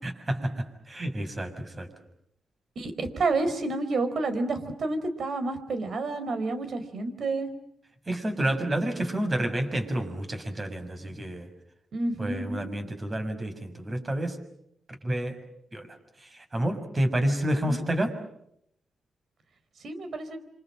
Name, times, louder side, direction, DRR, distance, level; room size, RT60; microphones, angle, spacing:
voice 1, 0.0-1.9 8.1-11.5 12.2-14.4 15.0-15.4 15.7-15.9 16.2-18.1, right 1 dB, 30° right, 7 dB, 6.5 m, -29 dB
voice 2, 2.7-7.5 11.9-12.7 17.6-17.8 19.8-20.4, right 3 dB, 60° right, 10 dB, 4.7 m, -29 dB
27.0 x 26.0 x 7.7 m, 0.75 s
cardioid pair, 70°, 0 cm